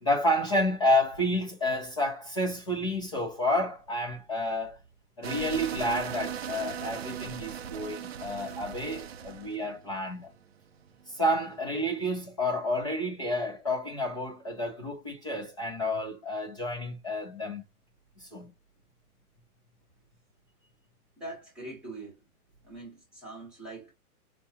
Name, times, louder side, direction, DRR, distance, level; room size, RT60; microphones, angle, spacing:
voice 1, 0.0-4.8 5.2-10.3 11.1-17.6 18.2-18.5, left 1 dB, 20° left, 0.4 m, -30 dB
sound 1, 5.2-12.0, right 8 dB, 45° right, 0.4 m, -38 dB
voice 2, 21.2-22.2 22.6-23.9, right 2 dB, ahead, 0.8 m, -43 dB
4.5 x 2.2 x 2.7 m
hypercardioid pair, 160°, 45 cm